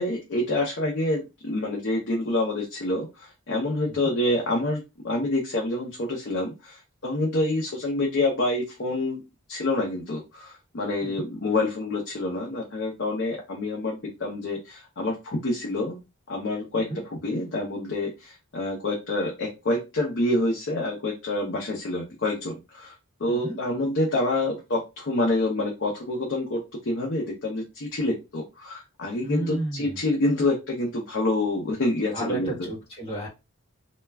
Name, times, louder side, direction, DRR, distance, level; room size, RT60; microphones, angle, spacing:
voice 1, 0.0-9.2 9.5-16.0 16.3-22.9 23.2-32.7, left 2 dB, 55° left, -1 dB, 0.6 m, -27 dB
voice 2, 23.3-23.6 29.2-30.0 32.1-33.3, right 2 dB, 25° left, -4 dB, 1.1 m, -32 dB
2.3 x 2.2 x 3.2 m, 0.25 s
head